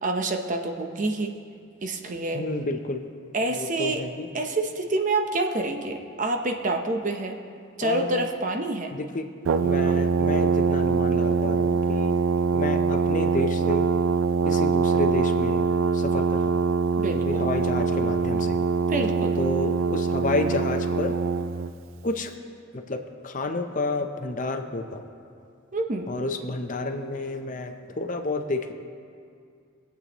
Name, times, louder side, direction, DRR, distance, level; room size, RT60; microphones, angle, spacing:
voice 1, 0.0-1.3 1.8-2.4 3.3-4.0 4.3-7.4 7.8-8.9 17.0-17.5 18.9-19.3 25.7-26.1, right 2 dB, 40° right, 4 dB, 0.7 m, -27 dB
voice 2, 2.3-3.0 3.5-4.3 7.8-8.3 8.9-9.3 9.6-12.2 12.5-13.9 14.4-16.6 17.1-18.6 19.4-21.2 22.0-22.3 22.7-25.0 26.1-28.7, left 2 dB, 40° left, 6 dB, 0.6 m, -30 dB
Brass instrument, 9.4-21.7, right 5 dB, 80° right, 0.4 m, -23 dB
21.5 x 8.2 x 3.0 m, 2.3 s
head